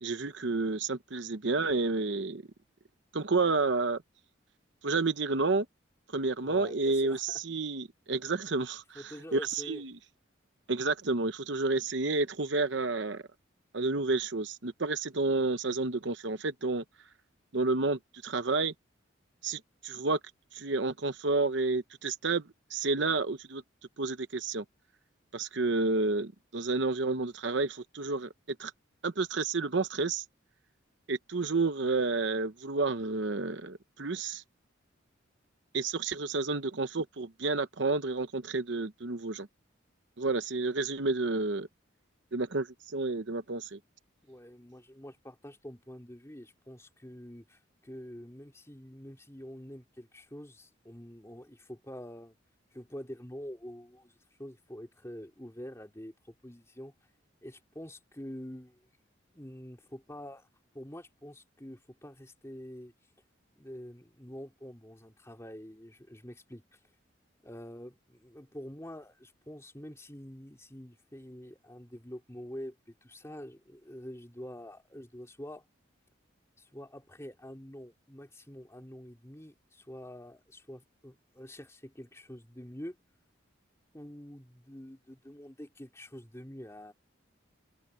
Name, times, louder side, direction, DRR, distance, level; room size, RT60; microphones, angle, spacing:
voice 1, 0.0-2.4 3.1-4.0 4.8-5.7 6.1-9.0 9.3-9.9 10.7-13.2 13.7-16.8 17.5-18.7 19.4-20.2 20.5-23.6 24.0-24.6 25.3-28.3 28.6-28.7 29.0-30.2 31.1-34.4 35.7-39.5 40.2-41.7 42.3-43.8, right 3 dB, 65° right, 0.9 m, -30 dB
voice 2, 6.4-7.4 8.9-9.8 44.2-52.4 52.7-56.9 57.4-58.8 59.3-60.5 60.7-62.9 63.5-66.8 67.4-75.6 76.6-83.0 83.9-86.9, equal, 15° left, 3.0 m, -46 dB
open air
head